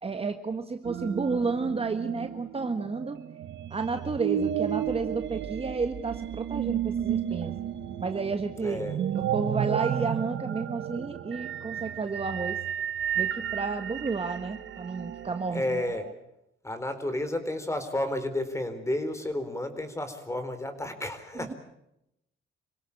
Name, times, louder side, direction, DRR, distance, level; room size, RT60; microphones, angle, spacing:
voice 1, 0.0-3.2 3.7-7.5 8.0-12.6 13.2-15.8 21.3-21.5, right 4 dB, 30° right, 7 dB, 1.5 m, -31 dB
sound 1, 0.8-16.1, right 10 dB, 65° right, 1.3 m, -33 dB
voice 2, 8.6-9.0 15.5-16.1 16.6-21.5, left 1 dB, 15° left, 9 dB, 4.1 m, -31 dB
27.0 x 17.5 x 8.6 m, 0.82 s
cardioid pair, 90°, 20 cm